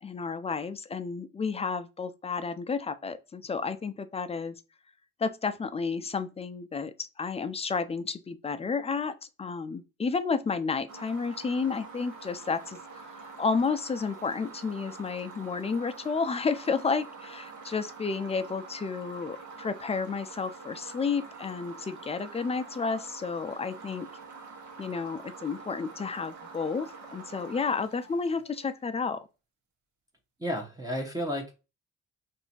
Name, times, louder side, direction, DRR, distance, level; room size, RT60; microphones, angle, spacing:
voice 1, 0.0-4.6 5.2-24.1 24.8-29.3, left 5 dB, 20° left, 0.4 m, -31 dB
sound 1, 10.9-28.9, right 4 dB, 70° right, 1.1 m, -46 dB
voice 2, 30.4-31.5, equal, 10° right, 0.9 m, -32 dB
2.8 x 2.6 x 4.2 m
cardioid pair, 90°, 30 cm